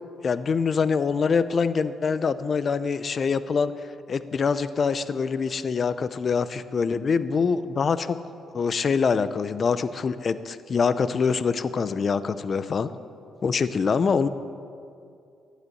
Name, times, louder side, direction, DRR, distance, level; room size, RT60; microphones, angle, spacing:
voice 1, 0.2-3.7 4.1-8.2 8.5-12.9 13.4-14.3, left 5 dB, 45° left, 14 dB, 0.6 m, -24 dB
11.0 x 8.2 x 9.1 m, 2.4 s
cardioid pair, 90°, 0 cm